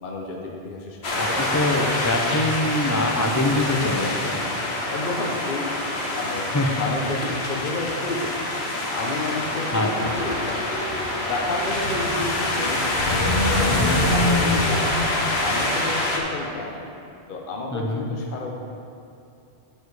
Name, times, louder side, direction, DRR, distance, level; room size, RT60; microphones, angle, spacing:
voice 1, 0.0-1.9 4.2-4.4 4.9-5.8 6.1-6.5 6.7-8.5 8.9-10.5 11.2-13.0 13.4-14.9 15.4-16.9 17.3-18.5, left 3 dB, 50° left, 0 dB, 0.9 m, -31 dB
sound 1, 1.0-16.2, left 1 dB, 70° left, 1.3 m, -25 dB
voice 2, 1.2-4.4 6.5-6.7 9.7-10.2 13.7-14.0 17.7-18.0, left 2 dB, 20° left, 2 dB, 0.5 m, -24 dB
9.1 x 6.6 x 4.7 m, 2.6 s
omnidirectional pair, 1.1 m